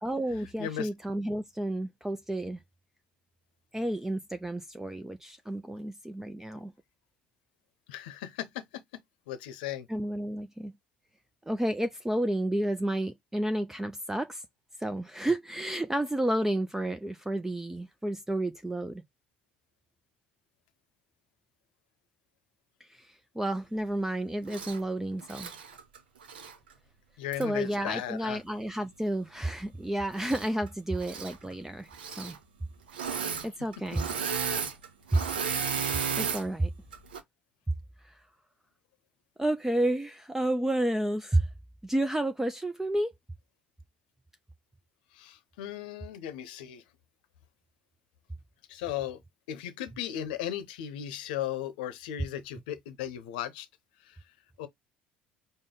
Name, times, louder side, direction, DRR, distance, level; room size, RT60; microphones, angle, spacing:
voice 1, 0.0-2.6 3.7-6.7 9.9-10.7 11.5-14.4 14.8-19.0 22.9-25.5 27.4-31.9 32.2-32.4 33.4-34.1 35.1-35.2 36.2-36.7 38.0-38.1 39.4-41.5 41.8-43.1, right 1 dB, 10° right, 0.5 m, -31 dB
voice 2, 0.6-0.9 7.9-8.8 9.3-9.9 27.2-28.4 45.1-46.8 48.7-49.2 49.5-53.7 54.0-54.2 54.6-54.7, left 11 dB, 70° left, 0.8 m, -36 dB
Engine / Mechanisms, 24.5-24.8 25.2-26.6 27.3-27.4 30.1-30.7 30.9-31.4 31.9-32.4 32.9-33.5 33.7-36.4 36.9-37.2, right 6 dB, 80° right, 0.8 m, -33 dB
5.0 x 2.2 x 3.7 m
figure-of-eight pair, 60°, 5 cm